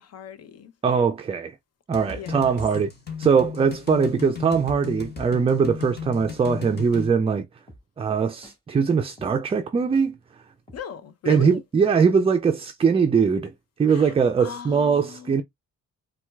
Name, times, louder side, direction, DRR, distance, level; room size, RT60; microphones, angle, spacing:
voice 1, 0.0-0.7 2.1-2.6 10.7-11.6 13.9-15.4, left 8 dB, 55° left, 0.7 m, -38 dB
voice 2, 0.8-1.5 1.9-2.9 3.2-7.4 8.0-10.2 11.3-13.5 13.8-15.4, right 6 dB, 20° right, 0.3 m, -21 dB
sound 1, 1.9-7.1, left 6 dB, 35° left, 1.2 m, -35 dB
sound 2, 6.9-7.1 7.7-7.8 8.4-8.6 9.2-9.3 9.9-10.1 10.7-10.8 11.4-11.6, equal, 15° left, 1.6 m, -48 dB
4.2 x 2.3 x 2.2 m
cardioid pair, 90°, 30 cm